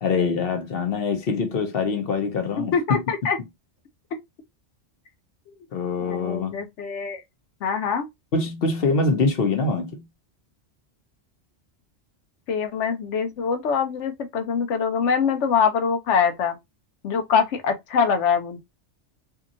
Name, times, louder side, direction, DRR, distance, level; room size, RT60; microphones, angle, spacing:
voice 1, 0.0-2.7 5.7-6.6 8.3-10.1, left 4 dB, 60° left, 0.9 m, -24 dB
voice 2, 2.7-3.4 6.0-7.2 7.6-8.1 12.5-16.6 17.0-18.6, left 6 dB, 90° left, 1.0 m, -24 dB
2.8 x 2.4 x 2.5 m
omnidirectional pair, 1.2 m